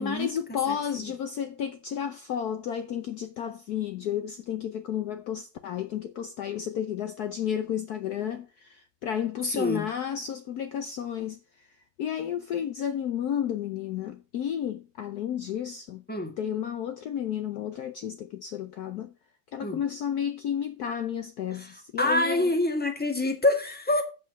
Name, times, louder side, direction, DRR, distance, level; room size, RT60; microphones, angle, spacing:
voice 1, 0.0-11.7 12.0-16.0 16.4-19.1 19.5-22.5, left 9 dB, 65° left, 1.1 m, -32 dB
voice 2, 9.5-9.9 16.1-16.3 19.6-19.8 21.5-24.0, left 1 dB, 5° left, 1.6 m, -26 dB
8.4 x 7.8 x 5.3 m
omnidirectional pair, 2.1 m